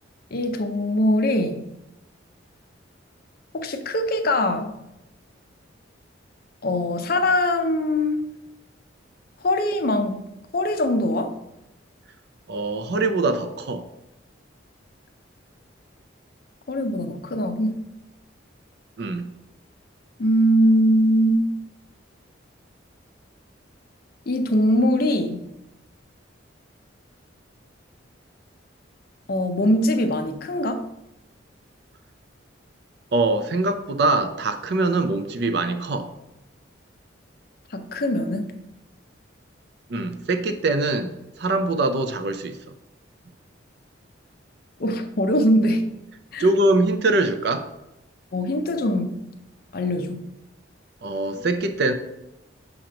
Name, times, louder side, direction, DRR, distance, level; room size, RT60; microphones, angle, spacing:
voice 1, 0.3-1.6 3.5-4.8 6.6-8.2 9.4-10.2 10.5-11.3 16.7-17.8 20.2-21.4 24.3-25.4 29.3-30.8 37.7-38.5 44.8-45.9 46.3-46.5 48.3-49.2 49.7-50.2, equal, 50° left, 7 dB, 0.5 m, -22 dB
voice 2, 12.5-13.8 19.0-19.3 33.1-36.1 39.9-41.1 41.4-42.6 46.4-47.7 51.0-51.9, right 2 dB, 55° right, 8 dB, 0.5 m, -23 dB
6.4 x 3.0 x 5.0 m, 0.91 s
head